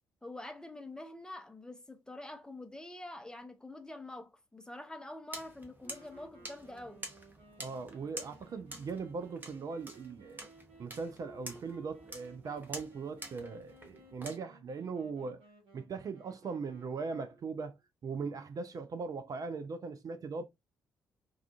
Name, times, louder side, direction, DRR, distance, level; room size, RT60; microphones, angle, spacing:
voice 1, 0.2-7.0, left 2 dB, 10° left, 0.6 m, -46 dB
sound 1, 5.3-14.4, right 1 dB, 20° right, 1.0 m, -48 dB
sound 2, 5.8-17.7, right 2 dB, 65° right, 1.0 m, -59 dB
voice 2, 7.6-10.5 10.8-15.4 15.7-20.4, right 4 dB, 40° right, 0.4 m, -40 dB
2.4 x 2.3 x 2.3 m
figure-of-eight pair, 40°, 9 cm